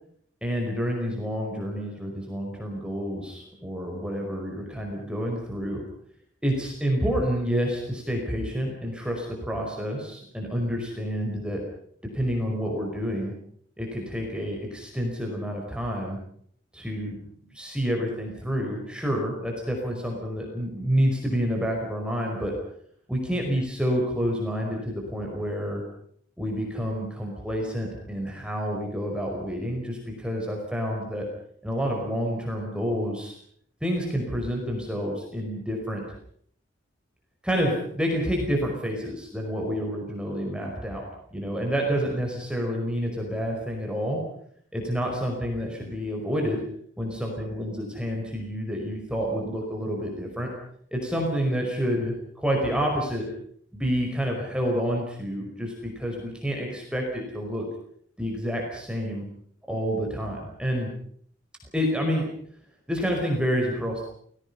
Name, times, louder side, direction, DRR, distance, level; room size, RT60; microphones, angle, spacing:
voice 1, 0.4-5.8 6.4-11.6 12.1-13.3 13.8-16.2 16.7-17.2 17.5-22.5 23.1-25.8 26.4-31.2 31.6-33.3 33.8-36.0 37.4-41.0 41.3-44.2 44.7-46.6 47.0-50.5 50.9-53.3 53.7-57.6 58.2-59.2 59.7-60.9 61.7-62.2 62.9-64.1, equal, 5° right, 0 dB, 5.1 m, -28 dB
29.0 x 20.5 x 5.6 m, 0.64 s
head